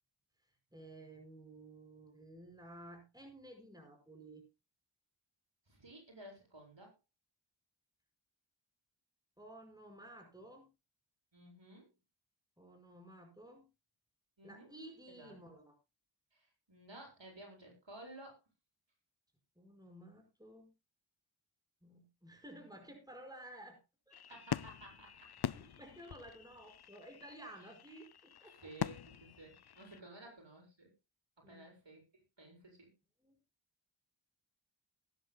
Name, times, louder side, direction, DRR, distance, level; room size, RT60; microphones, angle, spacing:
voice 1, 0.7-4.4 9.4-10.7 12.6-13.7 14.4-15.7 19.5-20.7 21.8-23.8 24.1-24.4 25.5-28.7 31.4-31.7 33.2-33.4, right 1 dB, 10° right, 4 dB, 5.1 m, -54 dB
voice 2, 5.7-6.9 11.3-11.9 14.4-14.7 15.2-15.4 16.3-18.4 24.3-25.3 28.5-30.9 31.4-32.0 32.4-32.9, right 1 dB, 65° right, 0 dB, 7.6 m, -54 dB
sound 1, 24.1-30.0, left 9 dB, 55° left, 0.6 m, -44 dB
20.5 x 10.5 x 2.3 m, 0.26 s
wide cardioid pair, 55°, 46 cm